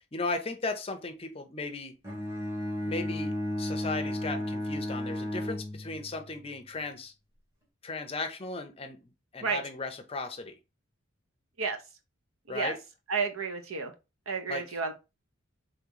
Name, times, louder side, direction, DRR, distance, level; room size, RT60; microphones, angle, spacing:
voice 1, 0.0-2.0 2.8-7.1 7.8-9.0 9.3-10.6 12.5-12.8 14.5-14.7, left 3 dB, 30° left, 0.5 m, -36 dB
Bowed string instrument, 2.0-6.3, left 1 dB, 15° right, 1.4 m, -33 dB
voice 2, 13.1-13.9 14.3-14.9, right 5 dB, 85° right, 0.8 m, -31 dB
3.2 x 2.9 x 3.8 m
head